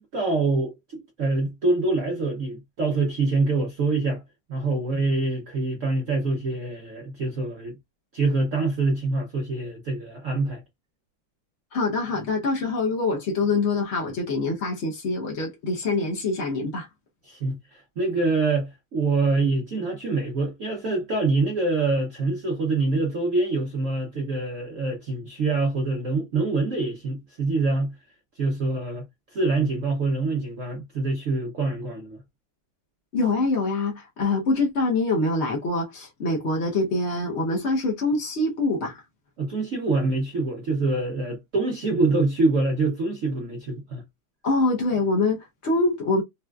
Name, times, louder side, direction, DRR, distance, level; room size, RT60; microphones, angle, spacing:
voice 1, 0.0-4.2 4.5-7.8 8.1-10.6 17.2-28.0 28.4-29.1 29.3-32.2 39.4-44.0, right 3 dB, 90° right, 0.6 m, -25 dB
voice 2, 11.7-16.9 33.1-39.0 44.4-46.2, left 3 dB, 55° left, 0.7 m, -25 dB
4.1 x 2.3 x 2.3 m
omnidirectional pair, 2.3 m